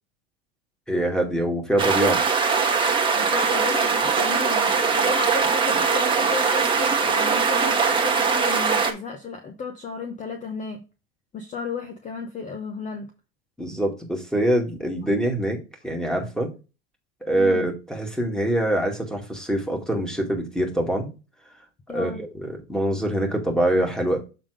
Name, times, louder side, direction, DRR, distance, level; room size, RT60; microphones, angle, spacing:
voice 1, 0.9-2.2 13.6-16.5 17.2-21.1 21.9-24.2, right 1 dB, ahead, 2 dB, 2.2 m, -24 dB
sound 1, 1.8-8.9, right 5 dB, 15° right, 1.4 m, -21 dB
voice 2, 3.1-10.8 11.3-13.1 17.3-17.6 21.9-22.2, left 4 dB, 25° left, 5 dB, 1.0 m, -33 dB
7.2 x 3.7 x 5.0 m, 0.29 s
supercardioid pair, 120°, 33 cm